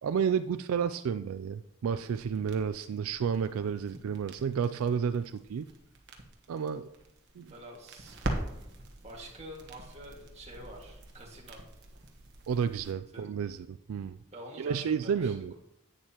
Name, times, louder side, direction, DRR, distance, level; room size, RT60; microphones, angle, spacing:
voice 1, 0.0-5.7 6.5-6.9 7.4-7.5 12.5-14.2 14.6-15.5, right 7 dB, 80° right, 12 dB, 0.3 m, -31 dB
sound 1, 1.9-12.9, right 1 dB, 55° right, 1.3 m, -43 dB
voice 2, 7.5-8.2 8.5-11.6 13.1-13.2 14.3-15.5, right 1 dB, 30° right, -2 dB, 2.0 m, -47 dB
11.0 x 9.0 x 3.0 m, 0.85 s
head